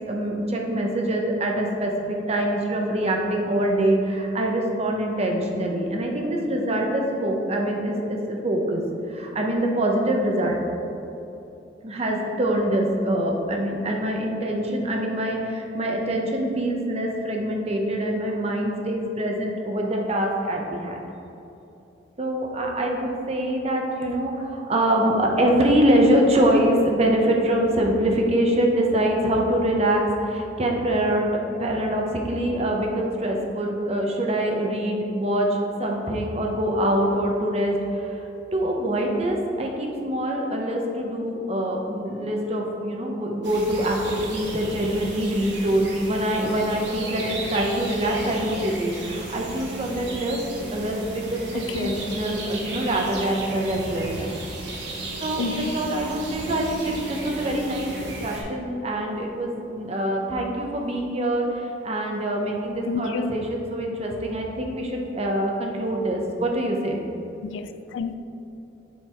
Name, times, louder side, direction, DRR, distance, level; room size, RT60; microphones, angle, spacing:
voice 1, 0.1-8.8 9.1-10.6 11.8-21.0 22.2-38.2 38.5-50.4 50.7-54.3 55.2-67.0, right 1 dB, 35° right, 1 dB, 0.8 m, -24 dB
sound 1, 43.4-58.4, right 1 dB, 65° right, 1.1 m, -34 dB
voice 2, 51.5-51.9 55.4-55.7 62.9-63.4 67.4-68.1, left 5 dB, 80° left, 10 dB, 0.3 m, -30 dB
7.1 x 4.0 x 4.4 m, 2.9 s
head